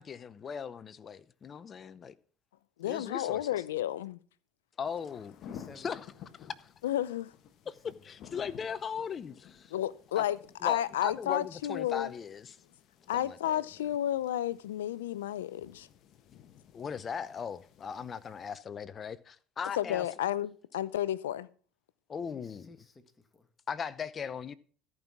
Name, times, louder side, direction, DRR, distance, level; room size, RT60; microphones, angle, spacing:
voice 1, 0.0-2.1 2.8-3.4 4.8-5.4 5.8-6.0 6.5-6.7 7.7-9.7 10.2-10.3 10.6-12.6 13.1-13.6 16.7-20.0 22.1-22.7 23.7-24.5, left 7 dB, 35° left, 0.7 m, -38 dB
voice 2, 2.8-4.2 6.8-7.3 9.7-12.1 13.1-15.9 19.8-21.5, left 12 dB, 90° left, 0.5 m, -32 dB
sound 1, 4.8-18.6, left 9 dB, 55° left, 1.0 m, -54 dB
voice 3, 5.5-6.0 7.6-8.0 19.8-20.1 22.3-23.5, left 3 dB, 20° left, 1.8 m, -55 dB
13.5 x 5.5 x 6.0 m
hypercardioid pair, 85°, 0 cm